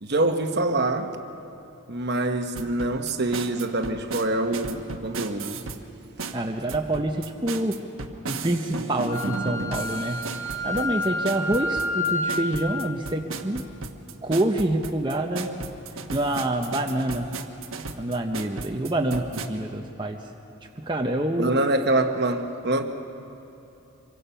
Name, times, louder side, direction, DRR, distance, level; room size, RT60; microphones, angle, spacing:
voice 1, 0.0-1.2 1.9-5.6 21.4-22.8, right 2 dB, 50° right, 7 dB, 1.2 m, -25 dB
sound 1, 2.5-5.8 6.2-19.5, right 3 dB, 70° right, 1.2 m, -35 dB
voice 2, 6.3-7.8 8.3-13.6 14.2-15.5 16.1-17.3 18.0-20.2 20.8-21.5, right 1 dB, 20° right, 2 dB, 0.8 m, -27 dB
Wind instrument woodwind instrument, 9.1-12.5, left 1 dB, 15° left, 3.7 m, -29 dB
26.0 x 23.5 x 5.7 m, 2.8 s
head